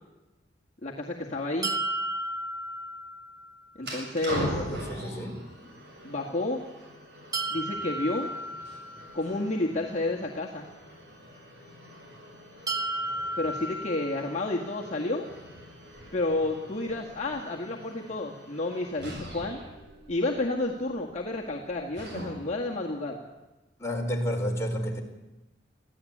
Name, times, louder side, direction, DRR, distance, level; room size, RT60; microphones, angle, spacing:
voice 1, 0.8-1.7 3.8-4.5 6.0-6.6 7.5-8.3 9.1-10.7 13.4-15.3 16.1-19.6 20.1-23.2, left 2 dB, 35° left, -2 dB, 2.0 m, -30 dB
sound 1, 1.6-3.6 7.3-9.4 12.7-14.7, right 1 dB, 20° right, 1.3 m, -34 dB
sound 2, 3.8-22.7, equal, 60° right, 7.7 m, -42 dB
voice 2, 4.4-5.4 23.8-25.0, equal, 15° left, 0 dB, 4.0 m, -31 dB
23.0 x 15.5 x 8.7 m, 1.1 s
head